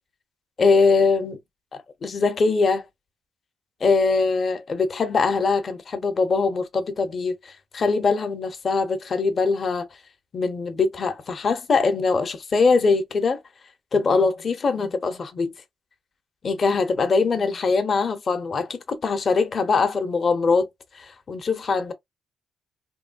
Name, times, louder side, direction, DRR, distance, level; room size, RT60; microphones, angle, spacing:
voice 1, 0.6-1.4 2.0-2.8 3.8-9.9 10.3-13.4 13.9-15.5 16.4-20.7 20.9-21.9, left 4 dB, 45° left, 0.6 m, -22 dB
3.0 x 2.2 x 2.5 m
cardioid pair, 90°, 0 cm